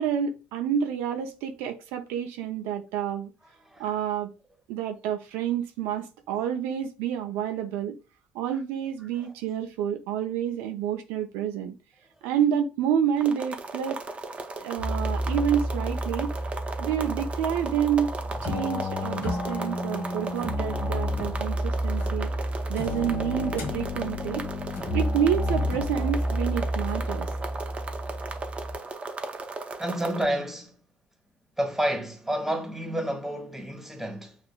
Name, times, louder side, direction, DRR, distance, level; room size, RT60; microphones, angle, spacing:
voice 1, 0.0-3.3 3.8-4.3 4.7-8.0 8.3-11.7 12.2-14.0 14.6-16.3 16.8-18.1 18.4-22.3 22.7-24.5 24.9-27.3, right 9 dB, 80° right, 0.5 m, -28 dB
sound 1, 13.2-30.2, right 3 dB, 30° right, 0.7 m, -36 dB
sound 2, 14.8-28.7, equal, 55° left, 1.2 m, -30 dB
voice 2, 29.8-30.8 31.6-34.4, right 1 dB, 5° right, 1.2 m, -30 dB
6.1 x 2.5 x 2.3 m
supercardioid pair, 75°, 4 cm